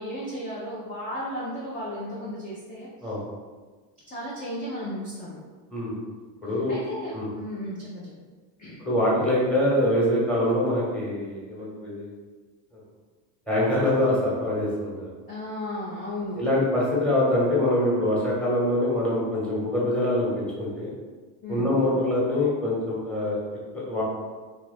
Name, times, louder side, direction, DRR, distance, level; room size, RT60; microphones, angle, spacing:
voice 1, 0.0-3.1 4.1-5.4 6.7-8.3 8.6-8.8 15.3-16.4 21.4-21.7, equal, 20° left, -6 dB, 0.4 m, -35 dB
voice 2, 6.4-6.7 7.1-7.3 8.8-12.1 12.7-12.8 13.5-15.1 16.3-20.9 21.5-23.4 23.7-24.0, left 1 dB, ahead, -6 dB, 0.9 m, -24 dB
2.8 x 2.3 x 3.9 m, 1.4 s
cardioid pair, 135°, 49 cm